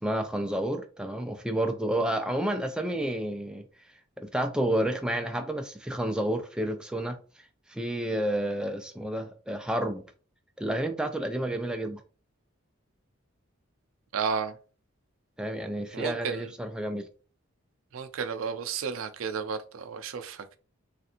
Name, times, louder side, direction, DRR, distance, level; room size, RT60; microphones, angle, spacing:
voice 1, 0.0-3.6 4.2-7.2 7.7-10.0 10.6-12.0 15.4-17.1, right 1 dB, 5° right, 0.3 m, -30 dB
voice 2, 14.1-14.5 15.9-16.5 17.9-20.6, right 6 dB, 80° right, 0.4 m, -32 dB
3.2 x 2.5 x 2.8 m
head